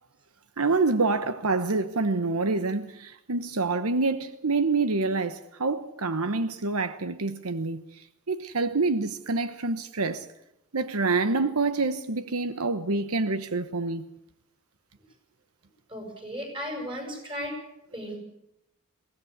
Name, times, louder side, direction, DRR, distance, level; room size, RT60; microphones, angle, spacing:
voice 1, 0.6-10.3 10.7-14.0, right 3 dB, 85° right, 1.1 m, -27 dB
voice 2, 15.9-17.6 17.9-18.2, equal, 25° right, 7.1 m, -35 dB
23.0 x 17.5 x 8.3 m
head